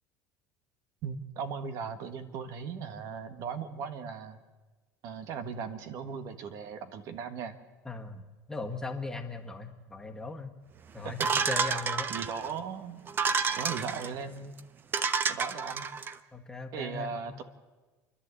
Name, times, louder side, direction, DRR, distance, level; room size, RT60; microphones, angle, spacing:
voice 1, 1.0-4.4 5.0-7.5 11.0-11.3 12.1-13.0 13.6-14.5 15.3-15.9 16.7-17.4, right 6 dB, 60° right, 10 dB, 1.5 m, -38 dB
voice 2, 7.9-8.2 8.5-10.5 10.9-12.1 16.3-17.4, left 3 dB, 10° left, 4 dB, 1.8 m, -38 dB
sound 1, 11.2-12.5 13.1-14.1 14.6-14.7 14.9-16.1, right 5 dB, 30° right, 0.9 m, -29 dB
29.5 x 11.5 x 8.3 m, 1.2 s
supercardioid pair, 120°, 7 cm